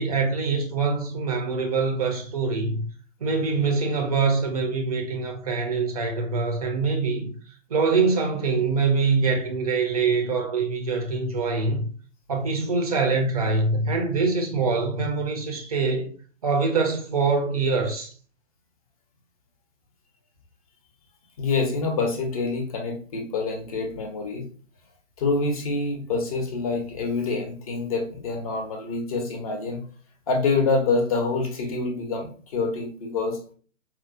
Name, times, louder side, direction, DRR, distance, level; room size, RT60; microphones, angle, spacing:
voice 1, 0.0-2.8 3.2-7.3 7.7-11.9 12.3-16.1 16.4-18.1, right 4 dB, 30° right, 0.5 m, -24 dB
voice 2, 21.4-24.5 25.2-29.8 30.3-33.4, left 3 dB, 30° left, 0.6 m, -26 dB
4.2 x 2.0 x 2.4 m
figure-of-eight pair, 130°, 38 cm